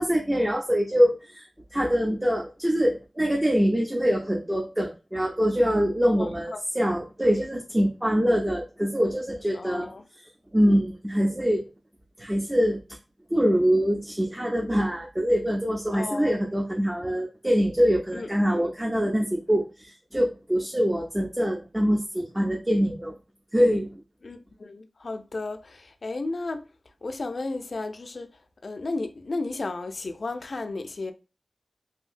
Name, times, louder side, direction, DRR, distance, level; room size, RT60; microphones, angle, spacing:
voice 1, 0.0-1.5 1.7-9.9 10.5-11.7 12.2-12.8 13.3-23.2 23.5-24.0, equal, 15° right, 0.5 m, -24 dB
voice 2, 6.1-6.6 9.5-10.0 15.9-16.3 18.1-18.7 24.2-26.7 27.0-28.3 28.6-31.1, left 3 dB, 65° left, 0.4 m, -33 dB
2.8 x 2.6 x 2.4 m
wide cardioid pair, 60°, 0 cm